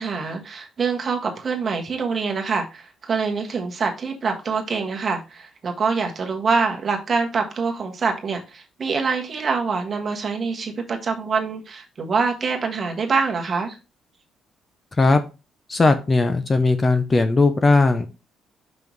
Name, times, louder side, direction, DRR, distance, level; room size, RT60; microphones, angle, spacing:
voice 1, 0.0-13.8, right 5 dB, 35° right, 2 dB, 1.4 m, -25 dB
voice 2, 15.7-18.1, left 3 dB, 20° left, 9 dB, 0.5 m, -18 dB
5.6 x 5.4 x 3.1 m, 0.29 s
cardioid pair, 150°, 0 cm